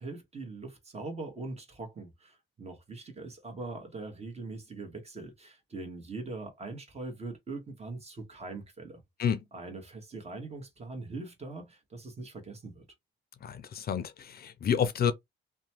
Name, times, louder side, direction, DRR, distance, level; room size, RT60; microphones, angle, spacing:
voice 1, 0.0-9.0 9.5-12.8, right 3 dB, 30° right, 1.3 m, -42 dB
voice 2, 13.4-15.1, left 7 dB, 50° left, 0.5 m, -29 dB
2.9 x 2.2 x 2.8 m
cardioid pair, 90°, 20 cm